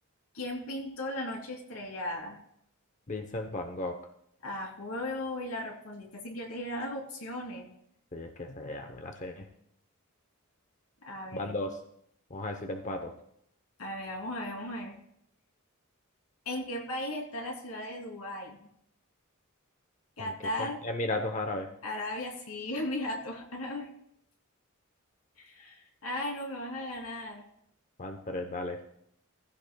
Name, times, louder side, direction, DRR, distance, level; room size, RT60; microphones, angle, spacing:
voice 1, 0.3-2.4 4.4-7.7 11.0-11.6 13.8-15.0 16.4-18.6 20.2-20.8 21.8-23.9 25.4-27.4, left 1 dB, 90° left, 1 dB, 2.9 m, -36 dB
voice 2, 3.1-4.0 8.1-9.5 11.3-11.7 12.3-13.1 20.2-21.7 28.0-28.8, left 2 dB, 35° left, 5 dB, 0.8 m, -35 dB
16.5 x 15.0 x 2.3 m, 0.71 s
head